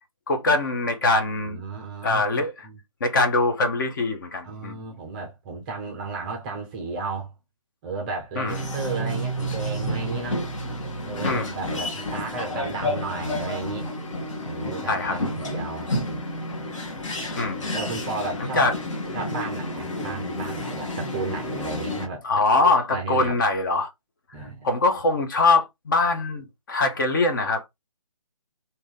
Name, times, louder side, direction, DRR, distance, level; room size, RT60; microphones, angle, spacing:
voice 1, 0.3-1.6 2.0-2.7 3.0-4.8 8.4-8.6 11.2-11.5 14.9-15.2 17.1-17.7 18.6-18.7 22.2-23.9 24.6-27.7, left 3 dB, 35° left, 0.8 m, -23 dB
voice 2, 1.5-2.8 4.4-7.3 7.8-10.4 11.0-13.9 14.4-16.2 17.7-18.7 19.1-23.3 24.3-24.7, right 3 dB, 15° right, 0.6 m, -34 dB
sound 1, 8.5-22.1, left 1 dB, 60° left, 1.3 m, -30 dB
2.9 x 2.7 x 3.8 m
figure-of-eight pair, 155°, 18 cm